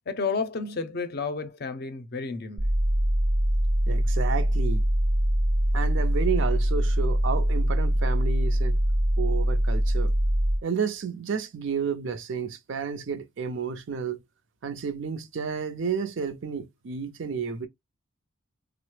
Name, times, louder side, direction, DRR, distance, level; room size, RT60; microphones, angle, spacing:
voice 1, 0.1-2.7, left 4 dB, 50° left, 0.5 m, -31 dB
sound 1, 2.6-10.6, equal, 85° right, 0.8 m, -23 dB
voice 2, 3.9-4.8 5.7-8.8 9.2-10.1 10.6-14.2 14.6-17.7, right 6 dB, 60° right, 0.4 m, -31 dB
3.6 x 2.0 x 3.1 m
head